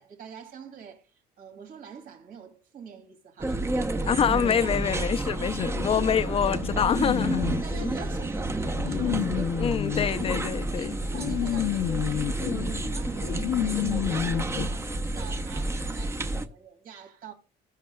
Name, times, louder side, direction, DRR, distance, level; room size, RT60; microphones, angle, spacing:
voice 1, 0.0-4.2 4.5-5.4 7.4-9.7 10.7-17.3, right 7 dB, 60° right, 2.6 m, -45 dB
sound 1, 3.4-16.5, right 2 dB, 15° right, 0.8 m, -30 dB
voice 2, 4.1-7.5 9.6-10.9, left 8 dB, 35° left, 0.5 m, -26 dB
sound 2, 5.6-14.7, left 12 dB, 70° left, 0.7 m, -31 dB
19.0 x 6.5 x 2.3 m
cardioid pair, 110°, 17 cm